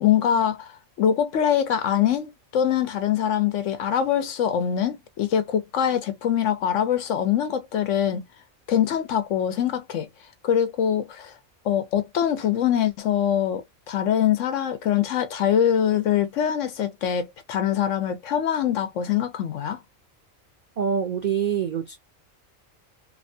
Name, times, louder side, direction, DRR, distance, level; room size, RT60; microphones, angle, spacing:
voice 1, 0.0-8.2 8.7-10.1 10.4-11.3 11.6-19.8, left 9 dB, 70° left, 0.9 m, -23 dB
voice 2, 20.8-22.0, right 7 dB, 50° right, 0.5 m, -25 dB
2.9 x 2.2 x 2.5 m
omnidirectional pair, 1.4 m